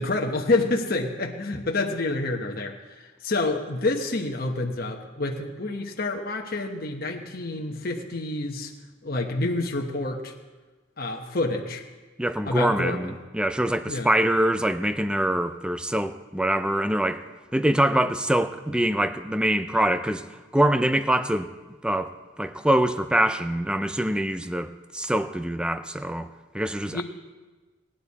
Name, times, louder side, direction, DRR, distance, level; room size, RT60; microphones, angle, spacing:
voice 1, 0.0-8.7 9.0-10.3 11.0-11.8 12.4-13.1 13.9-14.1 26.9-27.0, left 2 dB, 50° left, 1 dB, 1.1 m, -28 dB
voice 2, 12.2-17.2 17.5-20.2 20.5-21.5 21.8-22.1 22.4-26.3 26.5-27.0, right 1 dB, 5° right, 10 dB, 0.4 m, -24 dB
19.0 x 10.0 x 4.1 m, 1.3 s
head